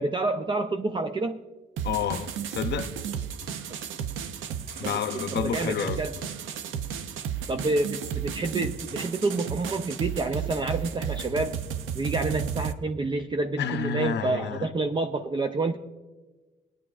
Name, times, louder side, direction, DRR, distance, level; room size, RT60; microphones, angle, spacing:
voice 1, 0.0-1.4 4.8-5.3 5.5-6.1 7.5-11.6 11.9-15.8, right 3 dB, 25° right, 0.5 m, -28 dB
voice 2, 1.8-2.9 4.7-6.0 13.6-14.7, left 7 dB, 60° left, 0.6 m, -30 dB
sound 1, 1.8-12.7, right 8 dB, 80° right, 0.6 m, -33 dB
19.0 x 9.9 x 2.4 m
cardioid pair, 90°, 20 cm